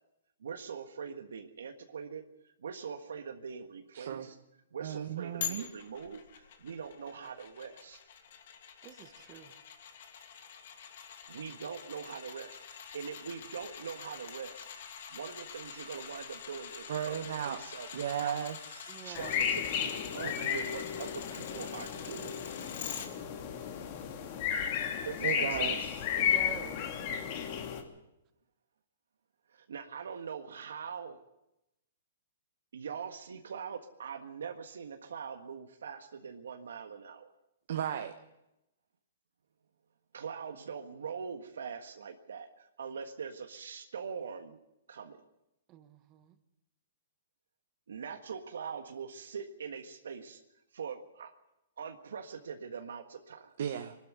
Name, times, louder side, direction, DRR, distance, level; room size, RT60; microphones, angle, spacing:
voice 1, 0.4-4.4 4.7-8.0 11.0-14.7 15.1-17.9 18.2-18.4 19.0-22.4 25.0-25.9 29.5-31.2 32.7-37.3 40.1-44.6 44.9-45.2 47.9-50.4 50.7-51.3 51.8-53.5, right 6 dB, 85° right, 1.6 m, -43 dB
voice 2, 3.9-4.3 4.8-5.6 16.9-17.6 17.9-18.9 20.2-20.6 25.2-26.0 37.7-38.1 53.6-53.9, right 9 dB, 60° right, 1.3 m, -35 dB
sound 1, 5.4-23.1 23.5-23.6, left 8 dB, 60° left, 2.7 m, -45 dB
voice 3, 8.8-9.6 18.9-19.3 26.2-27.0 45.7-46.4, right 11 dB, 25° right, 1.6 m, -48 dB
sound 2, 19.2-27.8, left 8 dB, 40° left, 2.6 m, -33 dB
22.0 x 12.5 x 9.4 m
hypercardioid pair, 150°, 0 cm